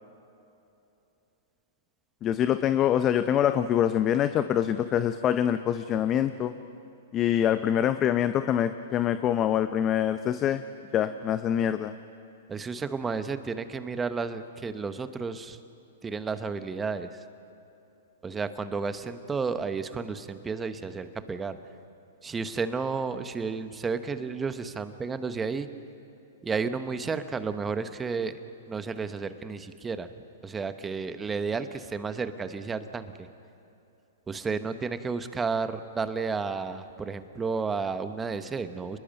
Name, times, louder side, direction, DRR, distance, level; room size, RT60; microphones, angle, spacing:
voice 1, 2.2-6.5 7.1-10.6 10.9-11.9, left 10 dB, 30° left, 11 dB, 0.7 m, -25 dB
voice 2, 12.5-15.6 16.0-17.2 18.2-21.6 22.2-25.7 26.4-28.3 28.7-30.1 30.4-33.3 34.3-39.0, right 4 dB, 15° right, 10 dB, 1.1 m, -32 dB
30.0 x 21.0 x 5.5 m, 2.8 s
hypercardioid pair, 120°, 0 cm